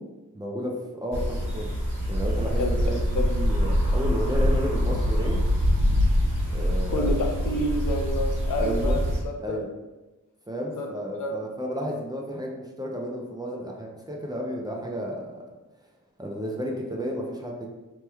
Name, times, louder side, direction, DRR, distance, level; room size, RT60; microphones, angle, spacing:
voice 1, 0.3-1.7 2.1-5.4 6.5-7.1 8.6-9.0 9.4-9.7 10.5-15.4 16.2-17.7, equal, 15° right, -2 dB, 0.4 m, -32 dB
sound 1, 1.1-9.2, equal, 40° right, 1.3 m, -24 dB
voice 2, 6.9-9.6 10.8-10.9 11.2-11.3, left 1 dB, 70° left, 2 dB, 0.5 m, -29 dB
2.9 x 2.1 x 3.3 m, 1.1 s
wide cardioid pair, 120°, 32 cm